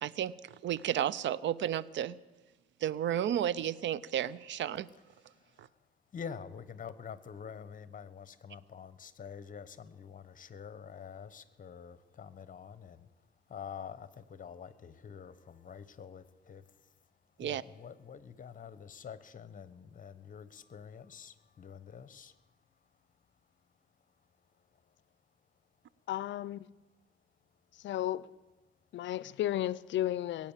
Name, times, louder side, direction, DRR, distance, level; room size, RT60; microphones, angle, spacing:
voice 1, 0.0-2.2 2.8-4.9 5.6-5.7 17.4-17.6, right 10 dB, 70° right, 0.6 m, -32 dB
voice 2, 5.3-5.7 6.1-13.1 13.5-16.6 17.4-22.3, left 7 dB, 40° left, 1.0 m, -47 dB
voice 3, 26.1-26.7 27.8-28.3 28.9-30.5, left 13 dB, 70° left, 0.5 m, -33 dB
21.5 x 8.9 x 7.3 m
cardioid pair, 90°, 20 cm